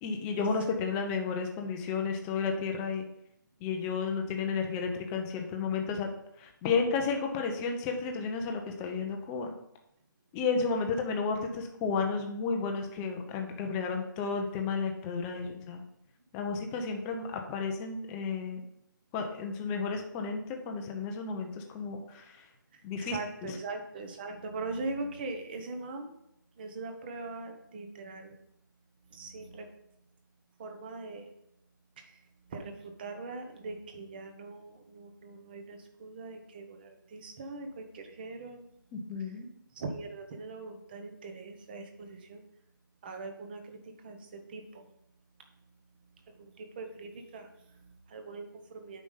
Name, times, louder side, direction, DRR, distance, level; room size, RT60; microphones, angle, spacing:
voice 1, 0.0-3.0 3.6-6.1 6.4-9.5 10.3-15.8 16.3-18.6 19.1-22.5 22.8-23.6 38.9-39.5, left 5 dB, 10° left, 3 dB, 0.7 m, -32 dB
voice 2, 22.7-26.1 26.6-28.4 29.1-29.7 30.6-31.3 32.0-32.1 32.5-38.7 39.7-42.4 43.0-43.8 44.0-44.9 46.4-49.0, right 3 dB, 25° right, 5 dB, 1.1 m, -41 dB
8.7 x 5.2 x 5.6 m, 0.78 s
hypercardioid pair, 170°, 11 cm